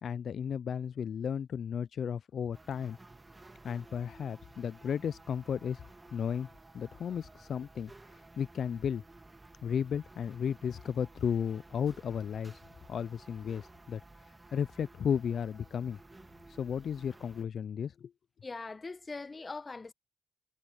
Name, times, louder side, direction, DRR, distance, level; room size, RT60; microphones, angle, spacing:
voice 1, 0.0-3.0 3.6-5.8 6.1-6.5 6.7-9.0 9.6-12.6 12.9-14.0 14.5-16.0 16.5-18.1, left 7 dB, 60° left, 0.3 m, -34 dB
sound 1, 2.5-17.4, right 2 dB, 20° right, 1.7 m, -55 dB
voice 2, 18.4-19.9, left 3 dB, 30° left, 0.9 m, -41 dB
cardioid pair, 75°, 0 cm